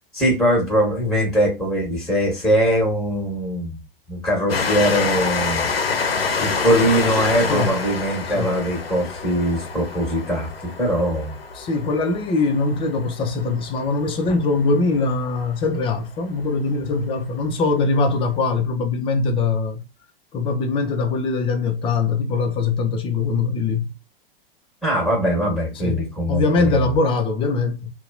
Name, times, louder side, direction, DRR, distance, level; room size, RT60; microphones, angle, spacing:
voice 1, 0.1-3.8 4.1-5.7 6.4-11.3 24.8-26.8, equal, ahead, 1.2 m, -21 dB
Train, 4.5-15.7 16.4-16.5 16.7-16.8, left 5 dB, 90° left, 0.5 m, -27 dB
voice 2, 11.6-19.8 20.3-23.9 25.8-26.0 26.3-27.9, left 3 dB, 20° left, 0.4 m, -22 dB
2.6 x 2.1 x 2.4 m
figure-of-eight pair, 100°, 29 cm